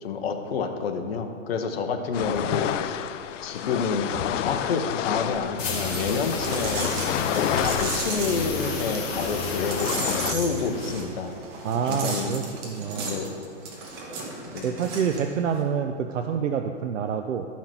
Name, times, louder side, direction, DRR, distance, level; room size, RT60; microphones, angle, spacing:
voice 1, 0.0-3.0 3.4-7.0 7.3-11.3 11.8-12.3 13.0-13.4 14.5-14.8, left 5 dB, 55° left, 5 dB, 1.1 m, -29 dB
sound 1, 2.1-10.3, left 10 dB, 80° left, 0.5 m, -30 dB
sound 2, 5.6-11.2, left 4 dB, 20° left, 1.6 m, -33 dB
sound 3, 5.9-15.6, right 3 dB, 25° right, 1.2 m, -34 dB
voice 2, 11.6-13.1 14.6-17.5, right 7 dB, 85° right, 5 dB, 0.7 m, -27 dB
12.0 x 5.8 x 4.4 m, 2.1 s
hypercardioid pair, 150°, 37 cm